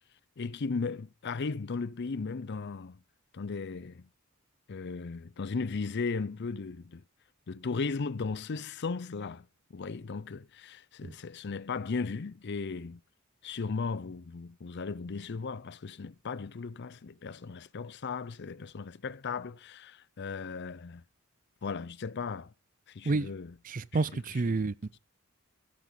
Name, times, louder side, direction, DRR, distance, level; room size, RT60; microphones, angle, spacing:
voice 1, 0.4-3.0 3.3-4.1 4.7-7.0 7.5-9.5 9.7-13.0 13.4-21.0 21.6-22.5 22.9-23.5 23.9-24.6, left 4 dB, 55° left, 0.5 m, -36 dB
voice 2, 23.7-25.0, right 3 dB, 40° right, 0.5 m, -30 dB
12.5 x 11.0 x 3.8 m
head